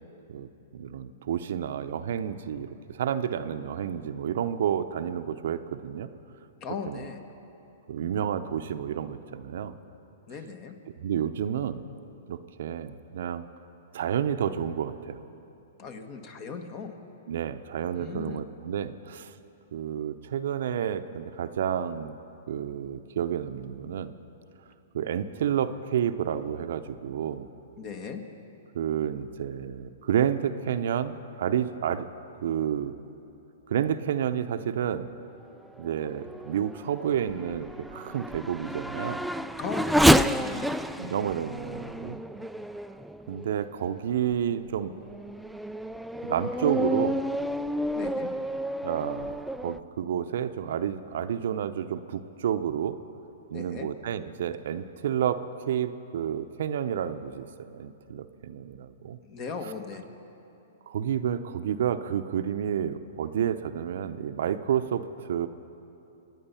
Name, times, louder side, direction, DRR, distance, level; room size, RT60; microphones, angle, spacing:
voice 1, 0.3-6.1 6.9-7.0 7.9-9.8 11.0-11.8 12.3-13.5 13.9-15.2 17.3-19.3 19.7-22.1 22.5-24.1 24.9-27.5 28.7-32.0 32.4-32.9 33.7-35.1 35.8-39.2 41.0-42.2 43.3-44.9 46.2-47.2 48.8-49.3 49.6-53.0 53.5-59.2 60.9-65.5, right 9 dB, 65° right, 10 dB, 0.7 m, -30 dB
voice 2, 6.6-7.2 10.3-10.8 15.8-17.0 17.9-18.4 27.8-28.2 39.6-41.2 47.9-48.3 53.5-53.9 59.2-60.0, left 6 dB, 40° left, 7 dB, 1.5 m, -38 dB
Race car auto racing / Accelerating revving vroom, 35.8-43.7 44.3-44.4 45.0-49.8, equal, ahead, 0.3 m, -29 dB
26.0 x 9.5 x 5.7 m, 2.9 s
hypercardioid pair, 120°, 0 cm